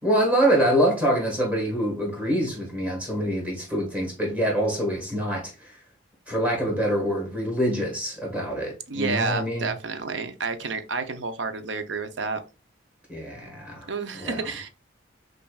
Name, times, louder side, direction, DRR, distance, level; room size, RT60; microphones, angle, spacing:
voice 1, 0.0-5.8 6.3-9.7 13.1-13.9 14.1-14.5, equal, 5° right, 1.5 m, -25 dB
voice 2, 8.9-12.4 13.9-14.7, right 4 dB, 75° right, 0.6 m, -30 dB
5.5 x 2.5 x 2.3 m
head